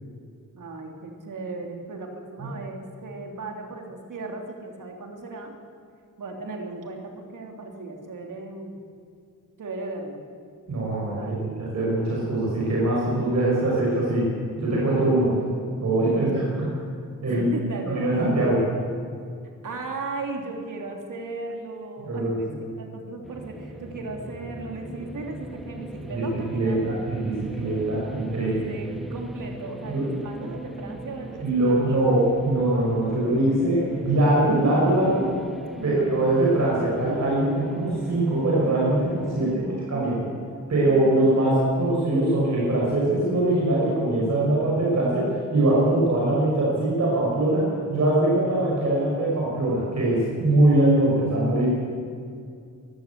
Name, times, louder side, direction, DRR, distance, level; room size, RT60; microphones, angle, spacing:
voice 1, 0.5-5.6 6.2-8.7 9.6-10.2 11.0-11.6 16.2-16.4 17.2-18.2 19.6-22.5 22.8-27.0 28.3-32.0 35.7-36.1 39.4-40.4, right 3 dB, 70° right, 2 dB, 3.3 m, -36 dB
voice 2, 10.7-14.3 14.6-15.4 15.8-16.3 17.2-17.4 17.9-18.6 22.0-22.4 26.0-28.5 29.9-30.1 31.4-35.3 35.8-39.6 39.9-40.2 40.7-51.7, right 1 dB, 55° right, -5 dB, 5.6 m, -22 dB
sound 1, 23.2-39.6, equal, ahead, 1.3 m, -39 dB
23.0 x 14.0 x 8.4 m, 2.3 s
wide cardioid pair, 180°, 33 cm